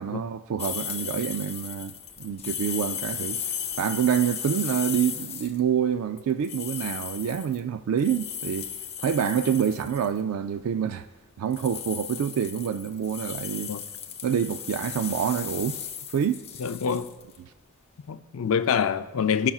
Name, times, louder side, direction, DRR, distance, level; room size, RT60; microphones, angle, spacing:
voice 1, 0.0-3.4 3.8-8.7 9.0-11.1 11.4-13.8 14.2-15.8 16.1-16.4, right 8 dB, 85° right, 0.3 m, -27 dB
sound 1, 0.6-5.6 6.2-10.2 11.5-17.4, left 8 dB, 30° left, 0.6 m, -36 dB
voice 2, 16.6-17.1 18.1-19.5, left 7 dB, 70° left, 0.4 m, -25 dB
14.5 x 5.8 x 2.3 m
head